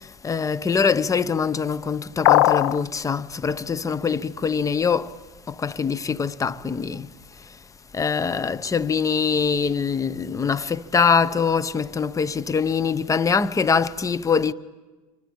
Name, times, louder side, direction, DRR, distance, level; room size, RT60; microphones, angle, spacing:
voice 1, 0.2-5.1 5.5-7.1 7.9-14.5, left 6 dB, 15° left, 0.9 m, -23 dB
sound 1, 2.3-2.8, left 16 dB, 65° left, 0.8 m, -17 dB
28.0 x 24.5 x 8.7 m
hypercardioid pair, 95°, 19 cm